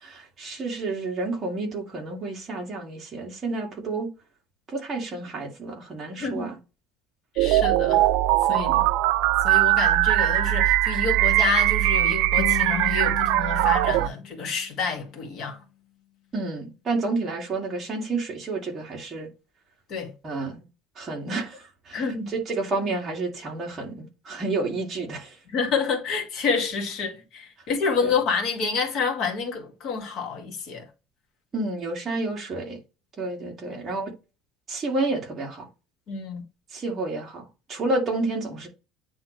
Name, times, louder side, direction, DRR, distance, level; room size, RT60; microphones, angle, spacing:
voice 1, 0.0-4.1 4.7-6.6 8.5-8.8 16.3-19.3 20.2-20.7 21.0-22.0 22.3-25.3 28.0-28.1 31.5-32.8 33.2-34.1 34.7-35.7 36.7-38.7, right 3 dB, 25° right, 2.3 m, -30 dB
voice 2, 6.2-6.5 7.3-8.1 8.5-8.7 9.4-15.6 19.9-20.2 21.9-22.3 25.5-30.9 33.7-33.8 36.1-36.4, left 5 dB, 45° left, 2.0 m, -28 dB
sound 1, 7.4-14.1, right 15 dB, 65° right, 0.4 m, -21 dB
sound 2, 12.4-15.5, left 14 dB, 60° left, 0.8 m, -36 dB
9.4 x 3.2 x 3.2 m
cardioid pair, 165°, 0 cm